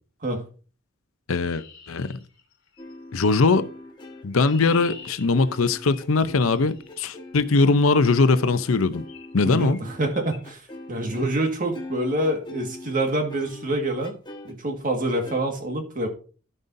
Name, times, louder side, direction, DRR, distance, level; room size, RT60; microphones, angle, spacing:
voice 1, 1.3-2.2 3.1-3.7 4.2-9.0 9.3-9.8, left 3 dB, 85° left, 0.6 m, -21 dB
Chirp tweet, 1.3-2.9 3.9-7.1 8.2-8.5 9.1-9.3 9.6-9.8 10.1-10.4, left 6 dB, 65° left, 3.1 m, -46 dB
sound 1, 2.8-11.4 11.7-14.5 15.2-15.4, left 2 dB, 20° left, 1.3 m, -42 dB
voice 2, 9.4-14.1 14.4-16.1, right 1 dB, 40° right, 1.8 m, -26 dB
14.5 x 5.4 x 2.7 m
head